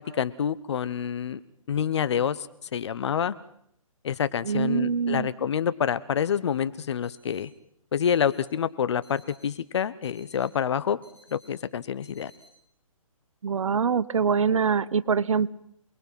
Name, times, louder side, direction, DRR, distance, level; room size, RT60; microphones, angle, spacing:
voice 1, 0.0-1.4 1.7-2.5 2.7-3.3 4.0-7.5 7.9-11.0 11.3-12.3, left 8 dB, 50° left, 16 dB, 1.1 m, -27 dB
voice 2, 4.4-5.3 13.4-15.5, right 6 dB, 65° right, 16 dB, 1.0 m, -24 dB
sound 1, 7.0-7.4 8.0-8.4 9.0-9.5 10.0-10.5 11.0-11.5 12.0-12.5, left 2 dB, 10° left, 6.7 m, -57 dB
28.5 x 21.0 x 5.9 m, 0.70 s
hypercardioid pair, 145°, 18 cm